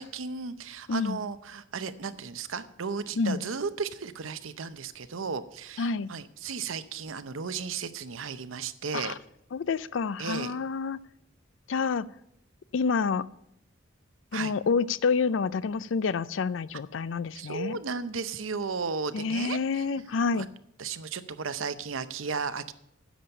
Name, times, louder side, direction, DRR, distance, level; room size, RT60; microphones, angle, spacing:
voice 1, 0.0-9.2 10.2-10.6 14.3-14.5 17.3-19.9 20.3-20.5 20.8-22.7, right 5 dB, 80° right, 13 dB, 0.7 m, -35 dB
voice 2, 0.9-1.2 3.2-3.4 5.8-6.1 8.9-9.1 9.5-11.0 11.7-12.1 12.7-13.2 14.3-17.8 19.1-20.5, left 5 dB, 65° left, 18 dB, 0.4 m, -28 dB
10.0 x 7.0 x 6.6 m, 0.80 s
head